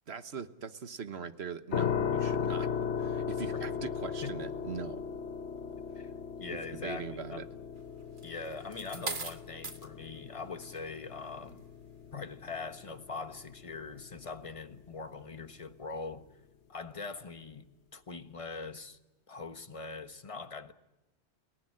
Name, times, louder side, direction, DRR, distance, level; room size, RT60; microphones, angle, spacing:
voice 1, 0.1-2.7 3.0-5.0 6.5-7.4, right 6 dB, 60° right, 1.4 m, -41 dB
sound 1, 1.7-14.6, left 7 dB, 65° left, 1.4 m, -37 dB
voice 2, 6.4-7.5 8.2-11.6 12.1-16.3 16.7-17.6 17.9-19.0 19.3-20.7, left 4 dB, 30° left, 1.4 m, -42 dB
sound 2, 8.2-9.9 10.6-10.9, right 4 dB, 45° right, 1.7 m, -39 dB
29.0 x 19.0 x 10.0 m
omnidirectional pair, 1.2 m